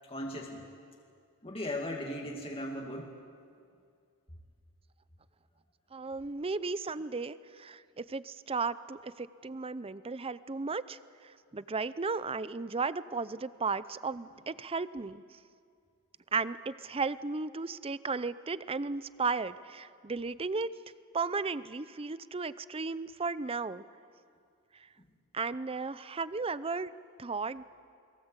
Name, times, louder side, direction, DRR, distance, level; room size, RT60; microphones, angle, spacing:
voice 1, 0.1-0.7 1.4-3.2, left 1 dB, 25° left, 0 dB, 2.0 m, -37 dB
voice 2, 5.9-11.0 11.5-15.2 16.3-20.7 21.1-23.8 25.3-26.9 27.2-27.6, right 4 dB, 25° right, 16 dB, 0.6 m, -35 dB
29.5 x 22.5 x 8.2 m, 2.2 s
head